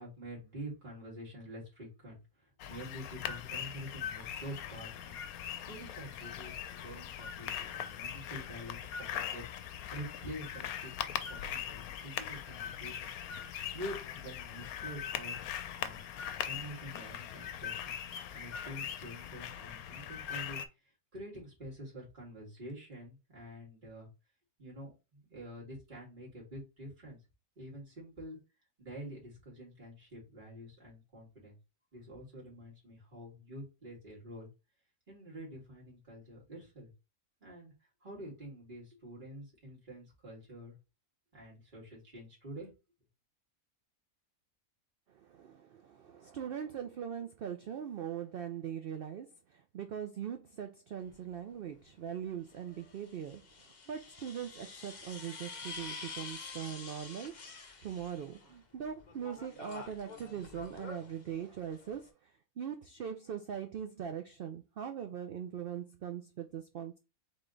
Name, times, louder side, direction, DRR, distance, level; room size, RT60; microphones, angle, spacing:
voice 1, 0.0-5.2 5.6-6.5 6.8-9.4 9.9-13.1 13.7-15.4 15.8-16.1 16.4-18.0 18.3-20.6 21.1-24.1 24.6-27.2 27.6-28.4 28.8-31.6 31.9-34.5 35.1-36.9 37.4-37.7 38.0-40.7 41.3-42.7, equal, 35° right, 2.2 m, -47 dB
sound 1, 2.6-20.7, left 9 dB, 80° left, 1.0 m, -41 dB
voice 2, 45.1-67.0, right 8 dB, 90° right, 0.5 m, -41 dB
sound 2, 51.0-51.1 52.5-58.5 58.8-62.1, left 4 dB, 40° left, 0.8 m, -48 dB
3.7 x 3.4 x 3.8 m
omnidirectional pair, 1.5 m